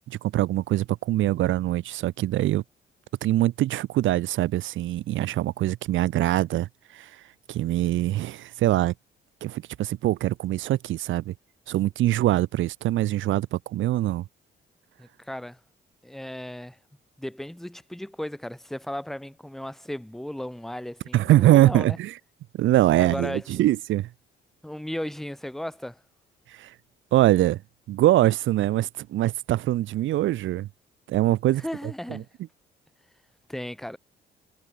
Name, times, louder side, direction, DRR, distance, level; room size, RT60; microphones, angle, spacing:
voice 1, 0.1-2.6 3.2-6.7 6.9-7.1 7.5-8.9 9.4-11.3 11.7-14.2 21.1-22.1 22.6-24.1 26.6-26.7 27.1-27.6 27.9-30.7 31.1-31.6 32.1-32.2, right 14 dB, 75° right, 0.8 m, -23 dB
voice 2, 15.0-15.6 16.0-16.8 17.2-22.0 22.9-23.6 24.6-26.0 31.6-32.3 33.5-34.0, left 1 dB, ahead, 0.6 m, -35 dB
cardioid pair, 90°, 20 cm